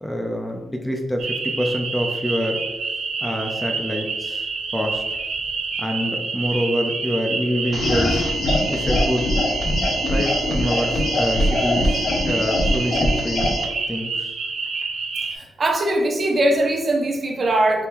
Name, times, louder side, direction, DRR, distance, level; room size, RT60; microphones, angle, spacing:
voice 1, 0.0-2.6 3.2-4.5 4.7-5.0 5.8-8.2 8.7-9.2 10.1-13.5 13.9-14.3, equal, 5° left, 2 dB, 0.4 m, -26 dB
sound 1, 1.2-15.4, right 4 dB, 85° right, 0.5 m, -28 dB
sound 2, 7.7-13.7, left 1 dB, 60° left, 0.6 m, -22 dB
voice 2, 15.3-17.9, right 1 dB, 40° right, 2 dB, 0.6 m, -21 dB
3.6 x 3.5 x 2.9 m, 1.1 s
wide cardioid pair, 125°, 0 cm